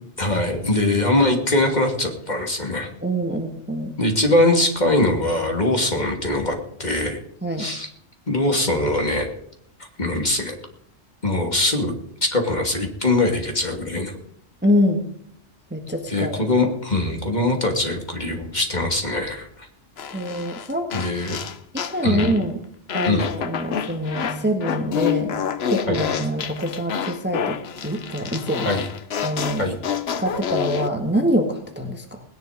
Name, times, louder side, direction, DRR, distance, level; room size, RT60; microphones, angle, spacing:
voice 1, 0.2-2.9 4.0-7.2 7.6-7.9 8.3-9.3 10.0-10.6 11.2-14.1 16.1-19.7 20.9-21.4 22.0-22.4 23.0-23.3 25.9-26.0 28.6-28.9 29.6-29.8, left 2 dB, 35° left, 2 dB, 2.7 m, -22 dB
voice 2, 3.0-4.0 7.4-7.7 14.6-15.1 15.7-16.4 20.1-21.0 21.7-22.6 22.9-25.4 25.7-28.7 29.2-29.7 30.2-32.2, equal, 10° right, 3 dB, 1.5 m, -25 dB
sound 1, 20.0-22.4 22.9-30.9, left 8 dB, 60° left, 1.0 m, -28 dB
20.0 x 10.5 x 5.1 m, 0.69 s
omnidirectional pair, 1.3 m